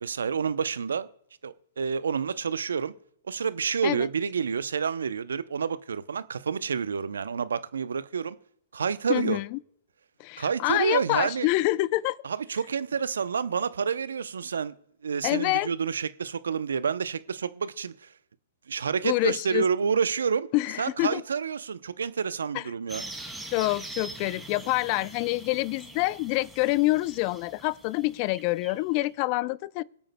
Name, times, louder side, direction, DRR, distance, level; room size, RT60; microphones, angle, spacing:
voice 1, 0.0-1.1 1.4-2.9 3.2-8.4 8.7-9.4 10.4-11.5 12.2-14.7 15.0-18.1 18.7-20.5 20.8-23.0, right 6 dB, 75° right, 0.6 m, -29 dB
voice 2, 9.1-9.6 10.2-12.2 15.2-15.7 19.0-19.6 20.5-21.2 22.5-22.6 23.5-29.8, left 20 dB, 40° left, 0.4 m, -26 dB
sound 1, 22.9-29.1, right 2 dB, 5° right, 2.3 m, -43 dB
26.0 x 8.7 x 2.2 m
hypercardioid pair, 120°, 0 cm